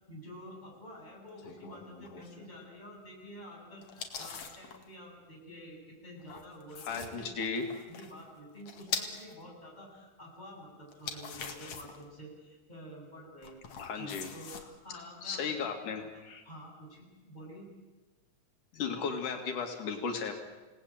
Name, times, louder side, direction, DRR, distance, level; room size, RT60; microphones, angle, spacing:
voice 1, 0.1-15.6 16.0-17.7, equal, 10° left, -2 dB, 7.5 m, -49 dB
sound 1, 1.4-2.5 3.8-4.8 6.2-9.3 10.9-12.0 13.4-14.6, left 6 dB, 65° left, 3.2 m, -42 dB
voice 2, 6.8-7.6 13.8-14.3 15.2-16.4 18.7-20.3, left 5 dB, 85° left, 4 dB, 3.7 m, -35 dB
28.5 x 18.5 x 8.9 m, 1.2 s
omnidirectional pair, 3.5 m